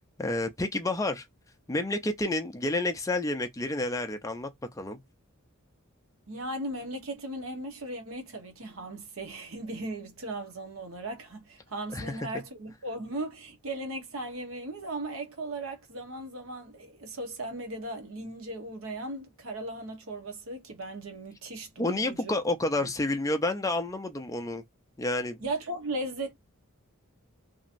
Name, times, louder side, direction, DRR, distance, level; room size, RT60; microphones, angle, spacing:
voice 1, 0.2-1.3 1.7-4.5 4.7-5.0 11.9-12.3 21.8-24.6 25.0-25.4, left 2 dB, 15° left, 0.5 m, -29 dB
voice 2, 6.3-22.4 22.8-22.9 25.4-26.3, right 2 dB, 65° right, 1.0 m, -37 dB
3.0 x 2.7 x 2.5 m
head